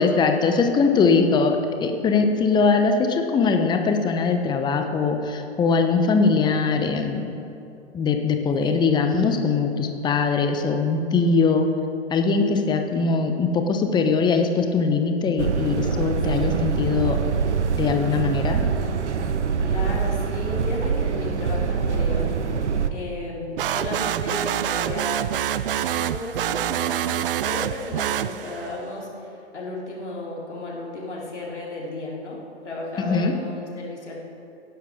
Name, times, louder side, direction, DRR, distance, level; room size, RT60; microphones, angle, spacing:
voice 1, 0.0-7.3 7.9-11.7 12.1-17.2 17.8-18.6 33.0-33.3, left 4 dB, 15° left, 5 dB, 0.9 m, -21 dB
sound 1, 15.4-22.9, right 6 dB, 80° right, 0.9 m, -24 dB
voice 2, 19.6-22.6 22.9-25.2 26.0-32.4 32.6-34.2, left 2 dB, 75° left, -4 dB, 3.5 m, -34 dB
sound 2, 23.6-28.8, right 11 dB, 55° right, 0.5 m, -26 dB
17.5 x 10.5 x 3.7 m, 2.7 s
figure-of-eight pair, 115°, 35 cm